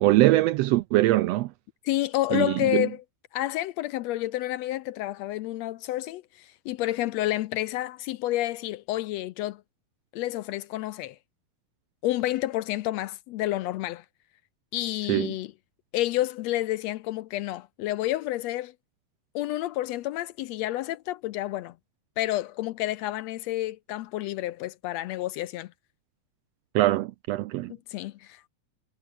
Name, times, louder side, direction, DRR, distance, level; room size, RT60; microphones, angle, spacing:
voice 1, 0.0-1.5 2.3-2.9 15.1-15.3 26.7-27.7, right 17 dB, 80° right, 1.5 m, -22 dB
voice 2, 1.8-3.0 3.3-9.6 10.1-11.2 12.0-14.0 14.7-15.5 15.9-18.7 19.3-21.7 22.2-25.7 27.9-28.5, left 15 dB, 80° left, 1.7 m, -29 dB
omnidirectional pair, 3.3 m